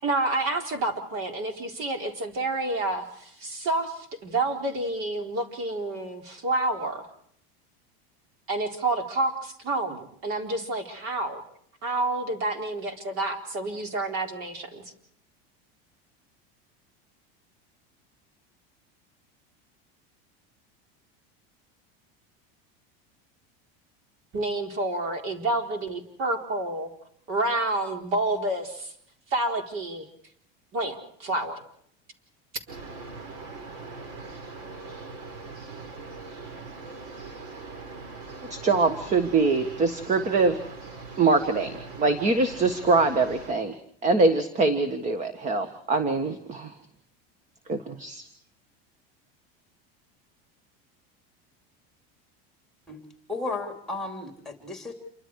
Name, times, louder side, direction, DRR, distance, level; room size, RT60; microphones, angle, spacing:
voice 1, 0.0-7.1 8.5-11.4 11.8-14.8 24.3-26.9 27.3-28.9 29.3-30.1 30.7-31.6, right 2 dB, 45° right, 4 dB, 4.3 m, -29 dB
sound 1, 32.7-43.5, right 3 dB, 65° right, 5.1 m, -41 dB
voice 2, 38.5-40.6 41.2-43.7 44.0-46.7 47.7-48.2, right 3 dB, 25° right, 9 dB, 1.6 m, -23 dB
voice 3, 53.3-54.9, left 3 dB, ahead, 4 dB, 3.4 m, -34 dB
28.5 x 24.5 x 4.8 m, 0.66 s
cardioid pair, 155°, 30 cm